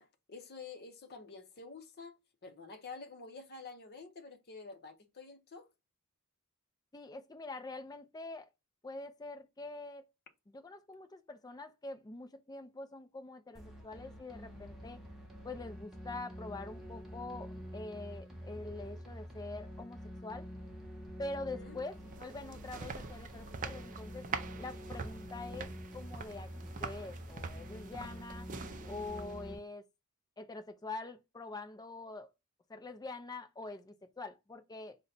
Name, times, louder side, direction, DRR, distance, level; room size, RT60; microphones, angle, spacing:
voice 1, 0.0-2.2 2.4-5.7 21.5-21.8, left 4 dB, 45° left, 0.7 m, -49 dB
voice 2, 6.9-8.5 8.8-10.1 10.5-15.0 15.4-20.5 21.2-24.2 24.6-28.5 28.8-29.8 30.4-32.3 32.7-35.0, left 2 dB, 20° left, 0.4 m, -45 dB
sound 1, 13.5-29.5, equal, ahead, 0.8 m, -47 dB
sound 2, 21.8-29.6, right 5 dB, 35° right, 0.4 m, -45 dB
4.0 x 2.2 x 3.9 m
head